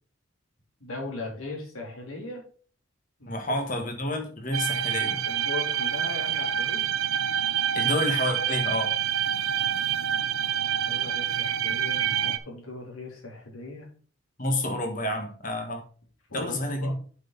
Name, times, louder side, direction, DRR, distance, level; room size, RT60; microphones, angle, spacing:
voice 1, 0.8-2.4 3.2-3.3 5.2-7.1 10.5-13.9 16.3-16.5 16.8-17.0, left 2 dB, 85° left, -1 dB, 3.3 m, -39 dB
voice 2, 3.3-5.2 7.7-8.9 14.4-15.8 16.3-16.9, left 1 dB, 40° left, 4 dB, 1.7 m, -29 dB
sound 1, 4.5-12.4, right 9 dB, 80° right, 0.6 m, -27 dB
7.9 x 5.9 x 4.1 m, 0.42 s
head